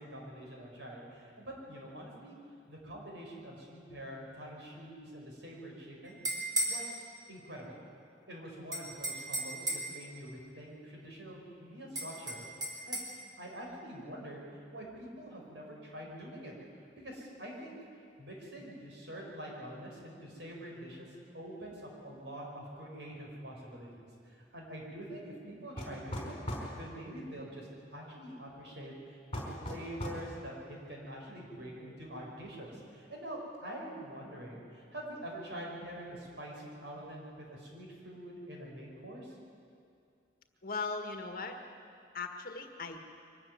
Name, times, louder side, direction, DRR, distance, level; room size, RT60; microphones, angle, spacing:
voice 1, 0.0-2.4 2.7-6.2 6.7-7.8 8.3-12.5 12.9-13.0 13.4-14.4 14.7-16.5 16.9-17.8 18.2-21.1 21.3-26.4 26.7-39.4, right 1 dB, 80° right, -1 dB, 5.3 m, -45 dB
sound 1, 6.1-6.8 8.7-10.0 12.0-13.1, right 1 dB, 20° right, 3.4 m, -34 dB
sound 2, 25.8-26.7 29.3-30.2, equal, 30° left, 4.3 m, -38 dB
voice 2, 40.6-41.6 42.1-43.0, left 4 dB, 50° left, 5 dB, 1.7 m, -38 dB
23.5 x 13.5 x 9.5 m, 2.4 s
head